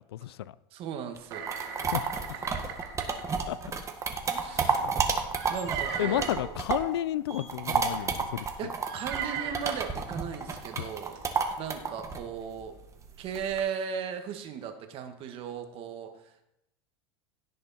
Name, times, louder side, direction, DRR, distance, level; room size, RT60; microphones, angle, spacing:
voice 1, 0.0-0.5 1.8-2.4 3.5-3.6 4.5-4.9 6.0-8.7 10.8-10.9, left 13 dB, 90° left, 18 dB, 0.5 m, -32 dB
voice 2, 0.7-1.5 2.5-2.9 4.3-4.8 5.5-6.5 8.6-11.2 11.6-12.7 13.2-16.4, right 7 dB, 45° right, 6 dB, 1.9 m, -37 dB
sound 1, 1.2-7.0 7.3-13.6, right 5 dB, 25° right, 1.6 m, -31 dB
sound 2, 1.3-3.2 4.5-6.4 7.3-7.5 8.0-8.1 8.8-9.9 10.6-10.7 11.1-11.2, right 8 dB, 70° right, 3.4 m, -38 dB
17.0 x 6.5 x 4.4 m, 0.86 s
supercardioid pair, 115°, 13 cm